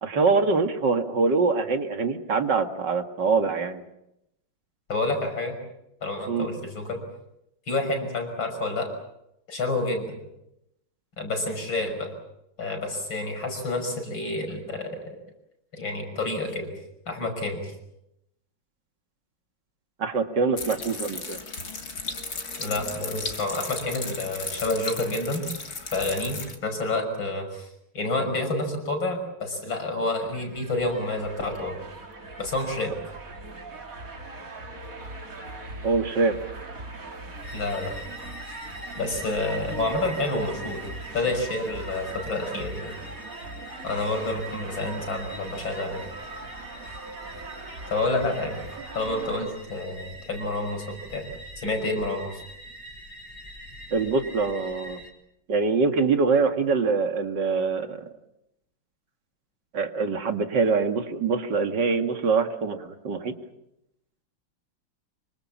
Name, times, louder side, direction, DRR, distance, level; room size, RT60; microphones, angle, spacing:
voice 1, 0.0-3.8 6.3-6.5 20.0-21.4 35.8-36.3 53.9-55.0 55.5-58.0 59.7-63.4, right 4 dB, 60° right, 7 dB, 2.6 m, -24 dB
voice 2, 4.9-5.6 6.0-7.0 7.7-8.9 9.5-10.2 11.2-12.1 12.6-15.2 15.7-16.7 17.1-17.7 22.6-25.4 25.9-27.7 27.9-31.8 32.4-32.9 37.5-37.9 38.9-40.8 41.1-42.9 43.8-46.0 47.9-48.6 48.9-51.2 51.6-52.3, left 2 dB, 75° left, 5 dB, 6.7 m, -29 dB
sound 1, 20.6-26.6, left 3 dB, 50° left, 3.2 m, -35 dB
sound 2, 30.3-49.5, right 2 dB, 45° right, 3.2 m, -40 dB
sound 3, 37.4-55.1, right 1 dB, 15° left, 4.2 m, -44 dB
26.0 x 24.5 x 7.3 m, 0.82 s
omnidirectional pair, 2.1 m